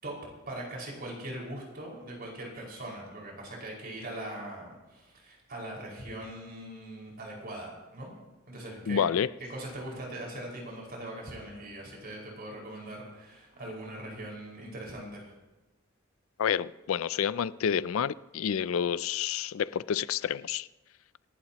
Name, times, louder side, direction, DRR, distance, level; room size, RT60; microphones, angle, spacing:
voice 1, 0.5-8.1 8.5-9.1 9.5-15.3, right 1 dB, 50° right, 5.4 m, -41 dB
voice 2, 8.9-9.3 16.4-20.7, left 8 dB, 80° left, 0.4 m, -29 dB
27.0 x 11.5 x 3.0 m
head